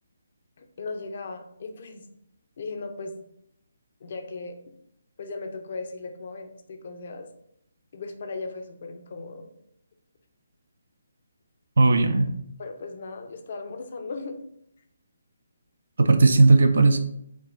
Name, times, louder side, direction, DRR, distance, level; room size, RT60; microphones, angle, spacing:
voice 1, 0.6-2.1 2.6-3.2 4.0-4.6 5.2-7.3 7.9-9.5 12.6-14.4, left 3 dB, 50° left, 6 dB, 0.6 m, -37 dB
voice 2, 11.8-12.3 16.0-17.0, right 3 dB, 70° right, 7 dB, 0.5 m, -17 dB
4.6 x 2.5 x 4.1 m, 0.74 s
figure-of-eight pair, 150°, 0 cm